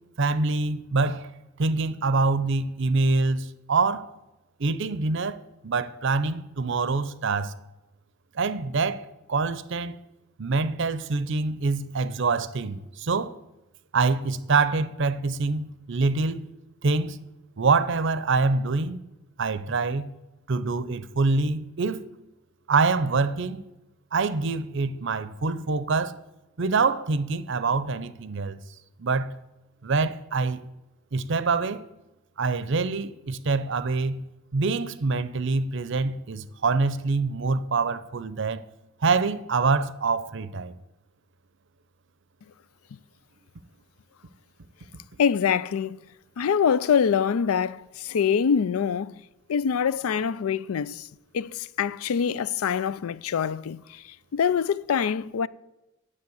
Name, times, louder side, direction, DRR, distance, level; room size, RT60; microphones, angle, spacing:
voice 1, 0.2-1.3 1.6-4.1 4.6-5.4 5.6-7.5 8.4-10.0 10.4-13.3 13.9-16.4 16.8-17.2 17.6-19.0 19.4-20.1 20.5-22.0 22.7-23.6 24.1-26.2 26.6-28.6 29.0-29.4 29.8-30.6 31.1-31.8 32.4-34.2 34.5-38.6 39.0-40.7, right 4 dB, 55° right, 0.6 m, -25 dB
voice 2, 45.2-46.0 46.4-49.1 49.5-51.1 51.3-55.5, left 7 dB, 80° left, 0.4 m, -25 dB
9.7 x 7.6 x 7.8 m
head